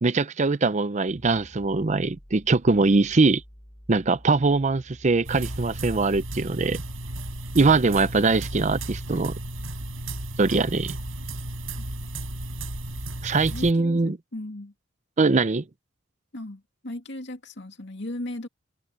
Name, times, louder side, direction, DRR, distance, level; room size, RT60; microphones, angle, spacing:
voice 1, 0.0-3.4 3.9-6.8 7.5-9.3 10.4-11.0 13.2-14.2 15.2-15.6, right 3 dB, 35° right, 0.6 m, -22 dB
sound 1, 1.1-13.0, equal, 20° left, 3.8 m, -50 dB
sound 2, 5.2-13.7, right 1 dB, 75° right, 5.8 m, -34 dB
voice 2, 13.5-14.7 16.3-18.5, left 1 dB, 60° left, 2.6 m, -37 dB
head